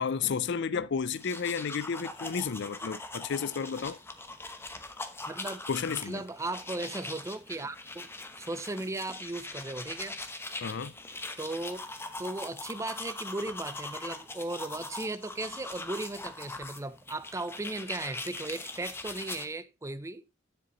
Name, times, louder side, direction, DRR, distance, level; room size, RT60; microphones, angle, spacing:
voice 1, 0.0-4.0 5.7-6.2 10.6-10.9, left 6 dB, 60° left, 0.5 m, -32 dB
sound 1, 1.1-19.5, left 2 dB, 10° left, 0.8 m, -41 dB
voice 2, 5.3-8.1 8.4-10.2 11.4-11.8 12.2-20.2, right 2 dB, 15° right, 0.5 m, -37 dB
9.8 x 7.6 x 3.0 m
head